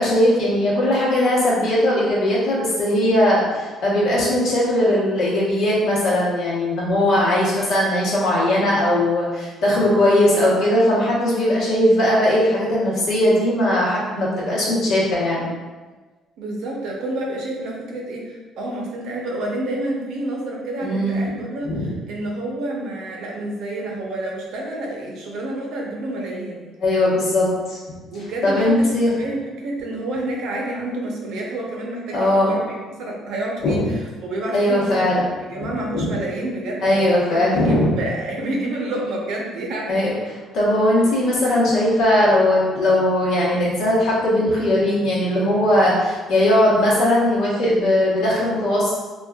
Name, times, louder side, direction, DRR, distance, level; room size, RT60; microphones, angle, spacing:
voice 1, 0.0-15.5 20.8-21.3 21.6-21.9 26.8-28.0 28.4-29.2 32.1-32.6 33.6-33.8 34.5-35.2 35.5-36.1 36.8-38.0 39.9-40.1 40.5-48.9, left 1 dB, 60° left, -7 dB, 1.1 m, -19 dB
voice 2, 16.4-26.6 28.1-40.1 41.0-41.1, right 1 dB, 65° right, -1 dB, 0.7 m, -29 dB
4.4 x 2.4 x 2.3 m, 1.3 s
cardioid pair, 160°, 0 cm